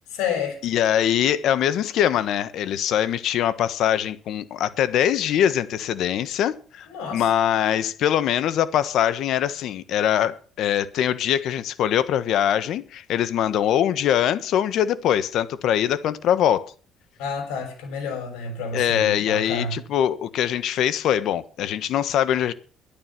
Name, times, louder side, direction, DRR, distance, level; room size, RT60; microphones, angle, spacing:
voice 1, 0.1-0.6 6.9-7.3 17.2-19.8, left 5 dB, 85° left, 6.6 m, -29 dB
voice 2, 0.6-6.9 7.1-16.7 18.7-22.5, left 10 dB, 65° left, 1.3 m, -22 dB
12.0 x 11.5 x 6.0 m
cardioid pair, 100°, 0 cm